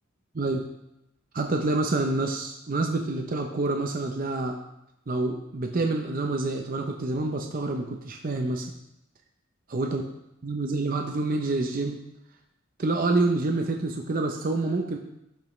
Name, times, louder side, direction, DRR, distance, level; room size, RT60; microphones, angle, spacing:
voice 1, 1.3-4.6 5.1-8.7 9.7-10.0 10.4-12.0 12.8-15.0, right 2 dB, 45° right, 3 dB, 0.7 m, -27 dB
12.0 x 5.3 x 3.2 m, 0.86 s
head